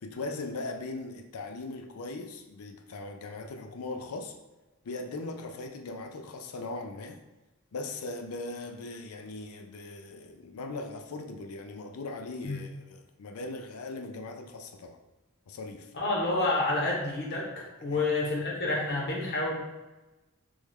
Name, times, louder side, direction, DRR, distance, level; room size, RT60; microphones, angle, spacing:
voice 1, 0.0-4.4 4.8-7.2 7.7-15.0 15.5-15.9 17.9-18.0, left 2 dB, 85° left, 5 dB, 0.5 m, -39 dB
voice 2, 15.9-19.6, left 2 dB, 50° left, -2 dB, 1.0 m, -29 dB
3.5 x 3.1 x 3.4 m, 1.1 s
head